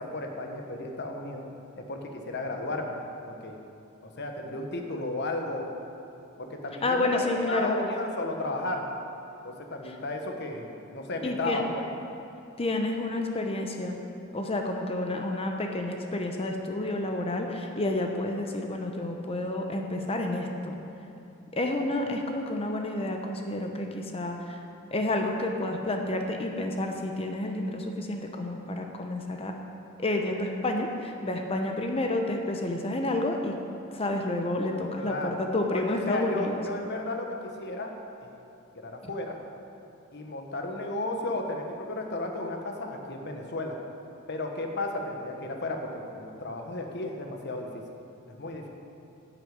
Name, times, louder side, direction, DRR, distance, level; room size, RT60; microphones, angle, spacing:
voice 1, 0.0-1.4 1.7-3.0 3.3-3.6 4.0-5.7 6.4-8.9 9.4-11.8 35.0-35.4 35.7-37.9 38.2-38.3 38.7-39.4 40.1-43.8 44.3-47.8 48.3-48.7, left 2 dB, 55° left, 3 dB, 1.2 m, -34 dB
voice 2, 6.8-7.8 9.8-9.9 11.2-11.6 12.6-14.0 14.3-20.8 21.5-24.6 24.9-29.6 30.0-33.6 33.9-36.6, left 2 dB, 25° left, 3 dB, 0.8 m, -30 dB
10.0 x 6.5 x 8.7 m, 2.8 s
head